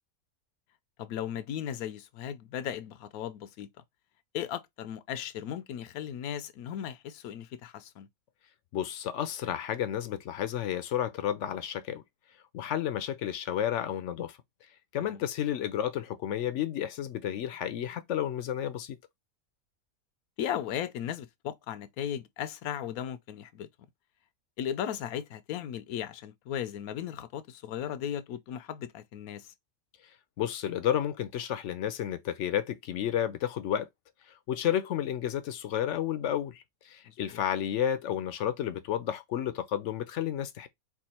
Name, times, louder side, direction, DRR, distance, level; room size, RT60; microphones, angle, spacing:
voice 1, 1.0-3.7 4.3-8.1 15.0-15.2 20.4-23.7 24.6-29.5 37.1-37.4, left 10 dB, 85° left, 1.1 m, -36 dB
voice 2, 8.7-12.0 12.5-14.4 14.9-19.0 30.4-33.9 34.3-40.7, left 10 dB, 65° left, 0.8 m, -31 dB
4.6 x 2.4 x 4.2 m
omnidirectional pair, 1.5 m